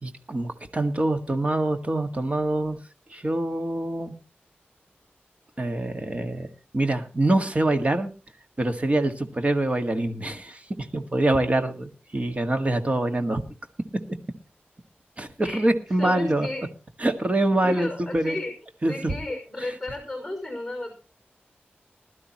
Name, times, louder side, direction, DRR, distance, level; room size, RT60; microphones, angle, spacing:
voice 1, 0.0-2.8 3.1-4.1 5.6-6.5 6.7-8.1 8.6-13.4 15.2-16.5 17.0-18.4 18.8-19.1, right 1 dB, 35° right, 6 dB, 1.8 m, -25 dB
voice 2, 16.0-16.6 17.6-18.5 18.9-20.9, left 2 dB, 5° left, 3 dB, 5.6 m, -33 dB
20.5 x 12.0 x 3.0 m, 0.32 s
wide cardioid pair, 105°, 4 cm